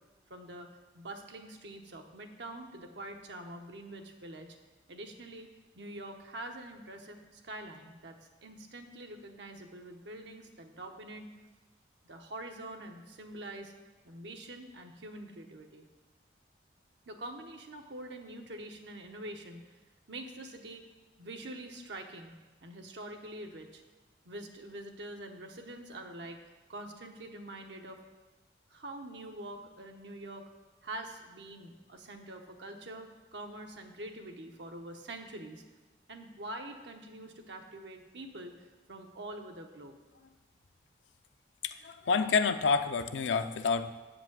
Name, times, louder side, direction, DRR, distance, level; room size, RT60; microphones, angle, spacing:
voice 1, 0.3-0.7 0.9-4.6 4.9-5.5 5.8-8.2 8.4-11.3 12.0-13.7 14.0-15.9 17.1-19.6 20.1-20.9 21.2-22.3 22.6-23.8 24.2-26.4 26.7-28.0 28.7-30.5 30.8-35.6 36.1-39.9, right 1 dB, 80° right, 3 dB, 1.0 m, -45 dB
voice 2, 41.6-44.0, left 5 dB, 90° left, 9 dB, 0.5 m, -28 dB
7.8 x 5.1 x 7.4 m, 1.2 s
head